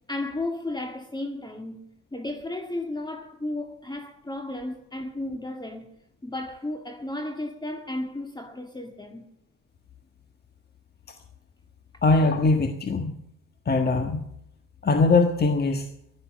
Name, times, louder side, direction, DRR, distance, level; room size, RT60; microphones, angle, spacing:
voice 1, 0.1-5.9 6.2-9.3, left 2 dB, 15° left, 1.9 m, -34 dB
voice 2, 12.0-13.1 13.7-14.3 14.8-15.9, left 3 dB, 35° left, 1.6 m, -21 dB
15.0 x 12.5 x 7.5 m
cardioid pair, 90°, 30 cm